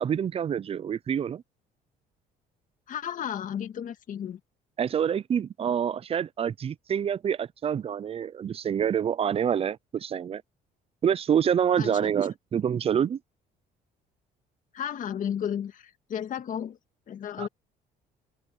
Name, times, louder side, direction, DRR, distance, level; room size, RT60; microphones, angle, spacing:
voice 1, 0.0-1.4 4.8-10.4 11.0-13.2 17.4-17.5, right 8 dB, 35° right, 0.5 m, -27 dB
voice 2, 2.9-4.4 11.8-12.1 14.7-16.8 17.1-17.5, left 9 dB, 50° left, 2.0 m, -33 dB
open air
cardioid pair, 110°, 17 cm